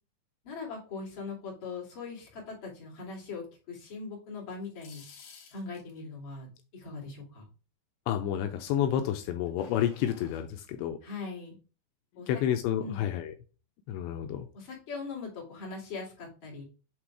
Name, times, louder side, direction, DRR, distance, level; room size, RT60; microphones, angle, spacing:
voice 1, 0.4-5.0 5.5-7.5 11.0-11.6 12.1-12.3 12.8-13.0 14.5-16.6, left 4 dB, 35° left, -4 dB, 2.7 m, -40 dB
sound 1, 4.5-6.0 9.3-10.4, left 5 dB, 65° left, 3.0 m, -53 dB
voice 2, 8.1-11.0 12.3-13.3 13.9-14.5, left 10 dB, 85° left, 6 dB, 2.8 m, -30 dB
8.1 x 3.4 x 4.7 m, 0.34 s
omnidirectional pair, 5.2 m